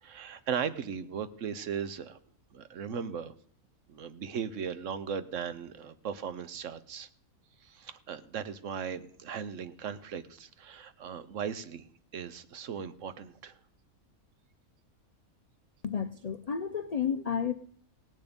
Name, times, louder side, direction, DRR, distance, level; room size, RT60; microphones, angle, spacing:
voice 1, 0.0-2.2 2.5-3.3 3.9-7.1 7.6-11.9 12.1-13.6, right 7 dB, 65° right, 13 dB, 1.1 m, -37 dB
voice 2, 15.8-17.5, left 7 dB, 60° left, 10 dB, 0.4 m, -31 dB
17.0 x 9.3 x 5.2 m, 0.62 s
omnidirectional pair, 1.5 m